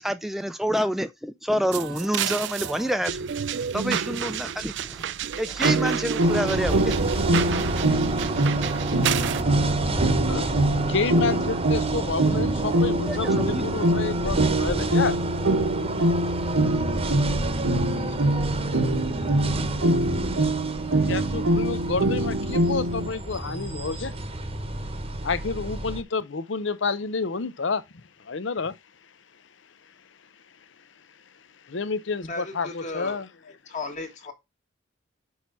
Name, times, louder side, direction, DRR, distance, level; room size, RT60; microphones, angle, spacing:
voice 1, 0.0-3.2 3.7-5.1 5.4-7.3 13.1-13.6, equal, ahead, 0.4 m, -28 dB
sound 1, 1.7-9.4, right 8 dB, 60° right, 0.4 m, -30 dB
sound 2, 5.6-23.1, right 1 dB, 85° right, 1.3 m, -24 dB
sound 3, 6.2-26.0, right 2 dB, 30° right, 1.0 m, -30 dB
voice 2, 8.1-15.2 21.0-24.1 25.2-28.8 31.6-33.3, left 4 dB, 65° left, 0.7 m, -30 dB
voice 3, 32.2-33.2 33.7-34.3, left 3 dB, 35° left, 1.7 m, -35 dB
6.4 x 4.7 x 5.5 m
head